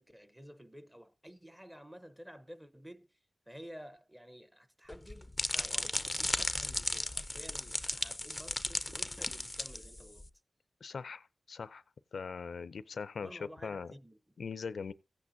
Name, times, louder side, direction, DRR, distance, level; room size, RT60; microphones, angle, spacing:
voice 1, 0.0-3.1 3.5-10.3 13.2-14.2, equal, 10° right, 0.8 m, -52 dB
sound 1, 4.9-10.3, left 1 dB, 15° left, 0.5 m, -35 dB
voice 2, 10.8-11.8 12.1-13.9 14.4-14.9, left 5 dB, 85° left, 0.5 m, -41 dB
16.0 x 8.5 x 2.7 m
wide cardioid pair, 95°, 0 cm